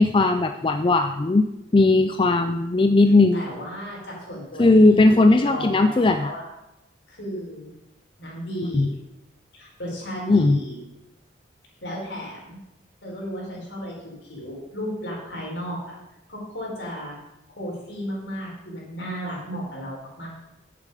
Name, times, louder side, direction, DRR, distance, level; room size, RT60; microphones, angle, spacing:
voice 1, 0.0-3.4 4.6-6.3 8.7-8.9 10.3-10.6, left 2 dB, 25° left, 7 dB, 0.4 m, -18 dB
voice 2, 3.3-6.5 7.1-7.7 8.2-8.9 9.5-10.8 11.8-12.6 13.0-15.9 16.3-17.2 17.6-20.3, equal, 75° left, -4 dB, 4.7 m, -34 dB
10.0 x 8.4 x 5.0 m, 0.89 s
head